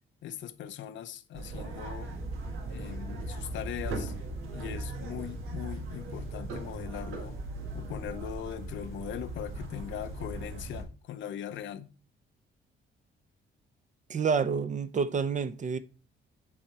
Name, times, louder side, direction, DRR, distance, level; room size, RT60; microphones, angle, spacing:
voice 1, 0.2-2.1 2.7-4.1 4.5-7.4 7.7-11.9, left 10 dB, 70° left, 0.6 m, -40 dB
sound 1, 1.3-10.8, right 2 dB, 85° right, 1.6 m, -38 dB
voice 2, 14.1-15.8, right 5 dB, 40° right, 0.6 m, -28 dB
7.6 x 4.0 x 4.3 m
cardioid pair, 90°, 20 cm